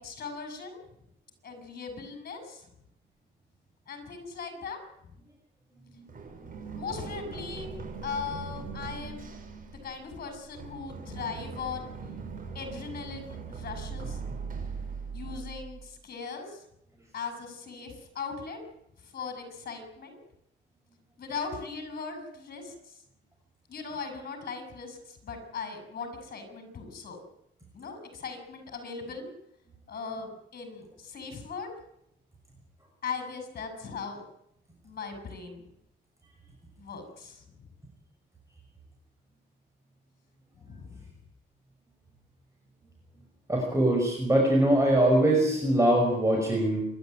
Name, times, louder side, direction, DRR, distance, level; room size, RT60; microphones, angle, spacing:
voice 1, 0.0-0.8 1.4-2.7 3.9-4.8 6.7-7.7 8.0-9.3 9.7-11.9 12.5-14.2 15.1-16.6 17.1-18.6 19.0-20.2 21.2-23.0 23.7-27.2 27.7-29.3 29.9-31.7 33.0-34.2 34.8-35.6 36.8-37.4 40.6-41.1, left 5 dB, 50° left, 7 dB, 7.7 m, -39 dB
Run, 6.1-15.8, right 5 dB, 45° right, 6.6 m, -40 dB
voice 2, 43.5-46.8, right 1 dB, 15° right, 0 dB, 6.1 m, -22 dB
27.0 x 12.0 x 9.1 m, 0.79 s
cardioid pair, 90°, 20 cm